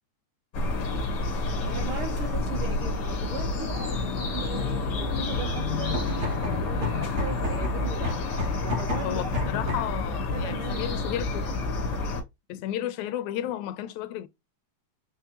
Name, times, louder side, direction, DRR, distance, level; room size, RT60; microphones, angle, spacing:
sound 1, 0.5-12.2, left 3 dB, 45° left, 1.5 m, -29 dB
voice 1, 1.6-6.1 6.4-8.2 8.6-9.7 10.3-11.2, right 6 dB, 85° right, 1.1 m, -39 dB
sound 2, 5.9-10.0, left 1 dB, 60° right, 0.7 m, -33 dB
voice 2, 9.0-11.6 12.5-14.3, left 12 dB, 80° left, 1.9 m, -33 dB
5.2 x 3.4 x 2.9 m
omnidirectional pair, 3.5 m